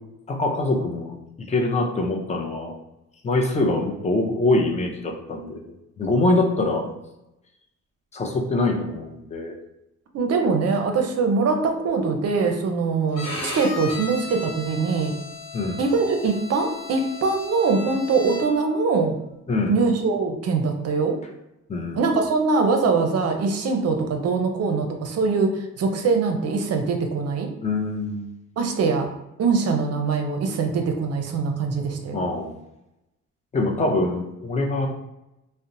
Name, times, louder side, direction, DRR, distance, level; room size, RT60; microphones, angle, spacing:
voice 1, 0.3-2.7 3.2-5.6 6.0-6.8 8.1-9.6 15.5-15.8 19.5-19.8 21.7-22.0 27.6-28.3 32.1-32.6 33.5-34.9, left 2 dB, 25° left, 1 dB, 0.5 m, -24 dB
voice 2, 10.1-15.1 15.8-19.1 19.7-21.2 21.9-27.5 28.6-29.1 29.4-32.2, right 4 dB, 55° right, 4 dB, 0.5 m, -23 dB
Bowed string instrument, 13.1-18.7, left 3 dB, 65° left, 0.9 m, -35 dB
2.8 x 2.1 x 2.5 m, 0.88 s
cardioid pair, 90°, 30 cm